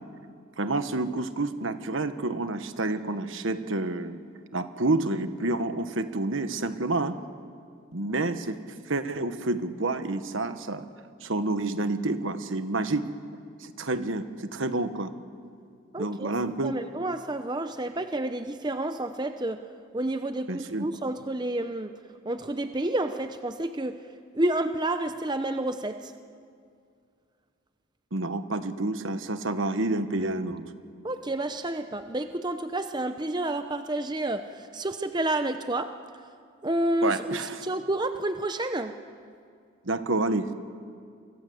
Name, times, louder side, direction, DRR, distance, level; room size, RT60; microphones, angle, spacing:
voice 1, 0.6-4.2 4.5-7.2 7.9-8.6 8.9-10.8 11.2-13.1 13.6-15.1 16.0-16.7 20.5-20.9 28.1-30.6 37.0-37.7 39.8-40.5, right 2 dB, 65° right, 10 dB, 1.3 m, -29 dB
voice 2, 15.9-16.3 16.6-19.6 19.9-21.9 22.2-24.0 24.3-26.1 31.0-35.9 36.6-38.9, right 1 dB, 20° right, 8 dB, 0.7 m, -30 dB
29.0 x 24.0 x 8.0 m, 2.3 s
head